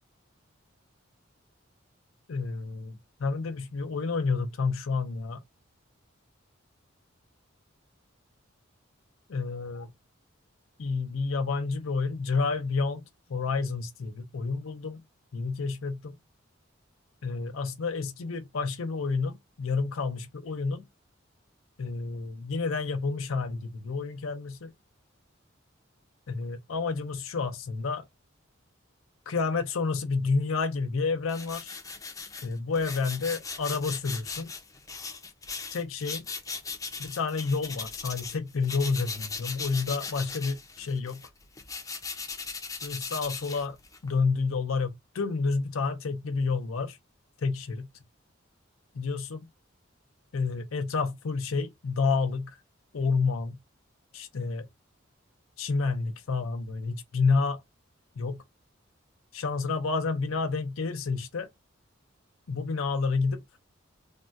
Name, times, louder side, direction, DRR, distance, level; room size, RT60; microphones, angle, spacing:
voice 1, 2.3-5.4 9.3-9.9 10.8-13.0 13.3-15.0 15.3-16.2 17.2-20.8 21.8-24.7 26.3-28.0 29.3-31.8 32.4-34.5 35.7-36.3 37.0-41.2 42.8-43.8 44.0-47.0 47.4-47.9 48.9-49.5 50.3-52.6 52.9-53.6 54.1-54.7 55.6-57.6 58.2-58.4 59.3-61.5 62.5-63.4, left 4 dB, 85° left, 0.6 m, -29 dB
sound 1, 31.3-38.4 38.6-44.1, left 4 dB, 15° left, 0.5 m, -38 dB
3.5 x 2.1 x 2.5 m
head